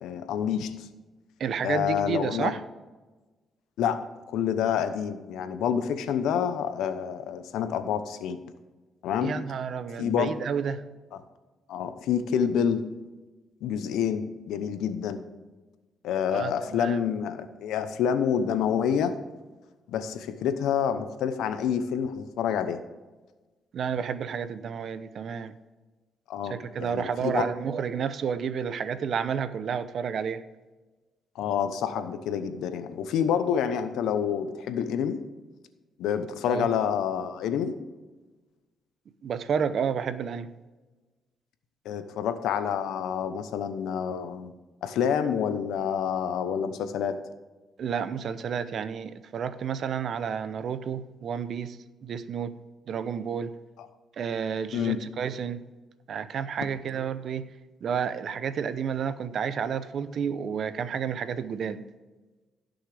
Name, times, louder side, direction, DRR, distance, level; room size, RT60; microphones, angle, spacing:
voice 1, 0.0-0.9 1.6-2.5 3.8-8.4 9.0-9.4 10.0-10.3 11.7-12.9 13.6-15.3 16.0-19.2 19.9-22.8 26.3-27.5 31.3-35.2 36.0-37.8 41.8-44.5 44.8-47.2 54.7-55.0, left 8 dB, 85° left, 10 dB, 0.9 m, -28 dB
voice 2, 1.4-2.6 9.2-10.8 16.3-17.0 23.7-25.5 26.5-30.4 32.0-32.1 36.4-36.7 39.2-40.5 47.8-51.8 52.0-52.6 52.9-53.5 54.2-55.6 56.1-57.5 57.8-61.8, right 7 dB, 60° right, 13 dB, 0.7 m, -31 dB
16.0 x 6.5 x 3.4 m, 1.2 s
cardioid pair, 90°, 0 cm